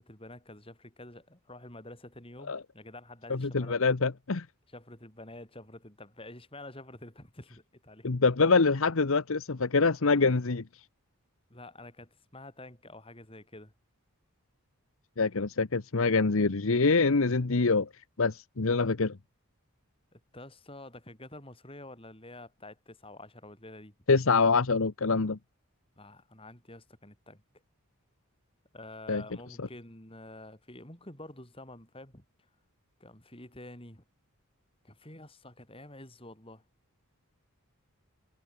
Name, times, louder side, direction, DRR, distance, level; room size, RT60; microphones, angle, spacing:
voice 1, 0.0-3.8 4.7-8.1 11.5-13.7 20.1-23.9 26.0-27.4 28.7-32.2 33.0-34.0 34.8-36.6, left 1 dB, 25° left, 6.6 m, -48 dB
voice 2, 3.3-4.5 8.0-10.6 15.2-17.9 18.2-19.2 24.1-25.4 29.1-29.2 29.6-29.7, left 4 dB, 65° left, 0.9 m, -25 dB
head